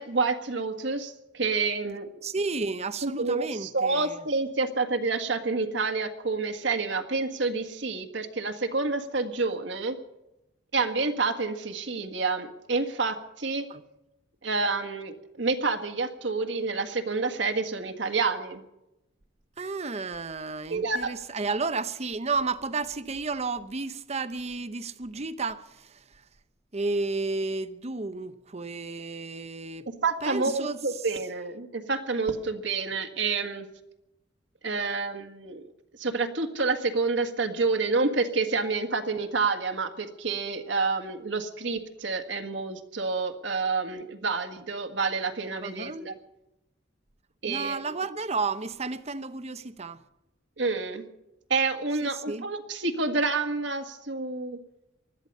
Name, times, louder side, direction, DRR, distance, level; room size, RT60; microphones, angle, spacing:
voice 1, 0.0-2.1 3.0-10.0 10.7-13.7 14.4-18.6 20.7-21.1 30.0-33.7 34.6-35.7 36.0-46.1 47.4-47.9 50.6-51.0 51.5-54.6, right 4 dB, 70° right, 1.7 m, -28 dB
voice 2, 2.2-4.2 13.7-13.8 19.6-26.0 26.7-29.9 30.2-30.8 45.6-46.1 47.5-50.0 52.0-52.5, right 3 dB, 35° right, 0.8 m, -32 dB
20.0 x 13.0 x 5.5 m
head